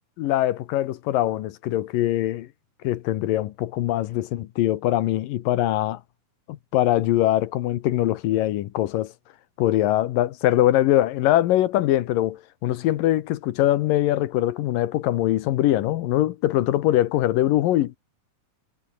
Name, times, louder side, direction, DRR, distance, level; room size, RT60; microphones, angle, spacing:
voice 1, 0.2-2.5 2.8-6.0 6.5-9.1 9.6-17.9, left 14 dB, 75° left, 2.5 m, -22 dB
omnidirectional pair, 4.3 m